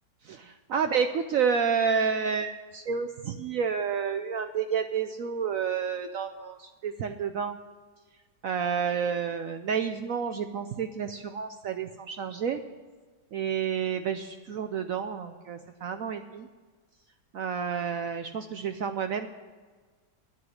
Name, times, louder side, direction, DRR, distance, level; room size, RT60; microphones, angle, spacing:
voice 1, 0.2-7.6 8.4-12.6 13.3-16.5 17.3-19.3, right 6 dB, 75° right, 8 dB, 0.8 m, -30 dB
10.0 x 7.8 x 9.7 m, 1.4 s
omnidirectional pair, 2.0 m